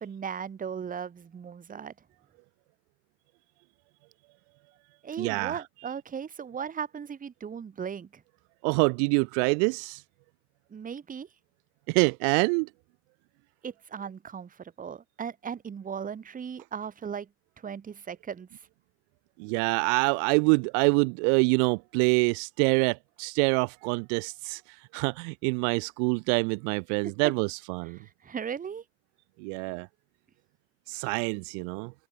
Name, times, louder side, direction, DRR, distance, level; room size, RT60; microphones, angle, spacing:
voice 1, 0.0-1.9 5.0-8.2 10.7-11.3 13.6-17.3 17.6-18.5 27.2-27.3 27.9-28.8, right 7 dB, 20° right, 0.7 m, -37 dB
voice 2, 5.2-5.6 8.6-10.0 11.9-12.7 19.4-24.6 24.9-28.0 29.4-29.9 30.9-31.9, right 40 dB or more, 60° right, 0.5 m, -26 dB
figure-of-eight pair, 45°, 41 cm